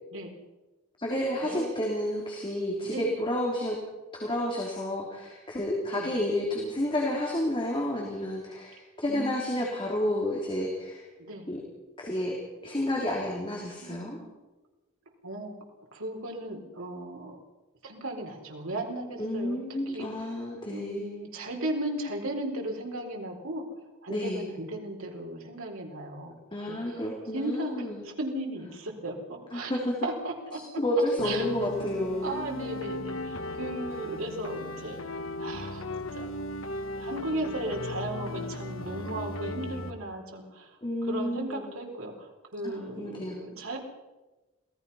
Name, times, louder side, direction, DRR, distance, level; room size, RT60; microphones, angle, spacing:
voice 1, 1.0-3.8 4.1-11.1 11.5-11.6 12.0-12.4 12.6-14.2 19.2-21.1 24.1-24.5 26.5-28.0 29.5-29.9 30.5-32.4 40.8-41.7 42.6-43.4, left 1 dB, 25° left, -2 dB, 3.4 m, -30 dB
voice 2, 9.1-9.8 11.2-11.4 13.8-14.3 15.2-15.5 15.9-17.4 17.8-20.1 20.7-23.6 24.0-26.3 26.7-27.0 27.3-29.7 30.0-30.6 31.2-31.4 32.2-35.0 35.4-35.8 36.1-36.3 37.0-40.7 41.0-43.8, right 1 dB, 75° right, 1 dB, 4.2 m, -36 dB
sound 1, 31.2-39.9, left 1 dB, 75° left, 1.5 m, -36 dB
27.0 x 18.0 x 5.6 m, 1.1 s
head